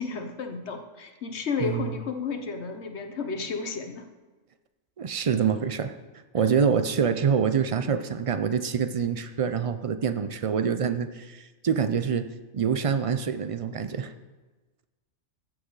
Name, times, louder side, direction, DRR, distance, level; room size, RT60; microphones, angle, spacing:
voice 1, 0.0-4.1, left 5 dB, 65° left, 6 dB, 1.1 m, -32 dB
voice 2, 1.6-1.9 5.0-5.9 6.3-12.3 12.5-14.1, right 7 dB, 55° right, 10 dB, 0.4 m, -26 dB
14.5 x 7.6 x 3.9 m, 1.2 s
omnidirectional pair, 1.3 m